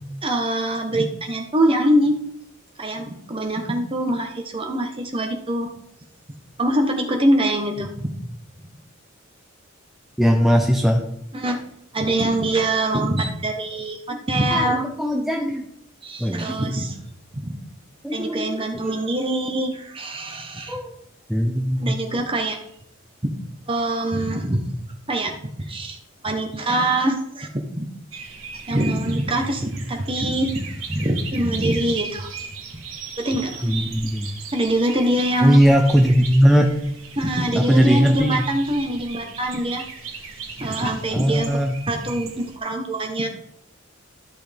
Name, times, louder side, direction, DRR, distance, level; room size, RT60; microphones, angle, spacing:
voice 1, 0.2-2.2 2.8-5.7 6.6-8.1 11.3-11.6 11.9-14.9 16.0-17.0 17.3-17.6 18.1-20.8 21.8-22.6 23.2-23.3 23.7-24.7 25.1-26.0 26.2-27.9 28.7-32.3 33.2-33.7 34.5-35.6 37.2-39.8 40.6-41.6 41.9-43.3, right 1 dB, 25° right, 3 dB, 1.1 m, -24 dB
voice 2, 10.2-11.0 14.5-15.6 16.2-16.6 18.0-18.5 18.8-18.9 20.7-20.9 21.3-21.9 33.6-34.3 35.4-36.7 37.5-38.4 41.1-41.8, equal, ahead, 1 dB, 0.6 m, -19 dB
sound 1, 28.1-42.6, right 5 dB, 80° right, 1.6 m, -37 dB
13.0 x 6.0 x 3.5 m, 0.74 s
head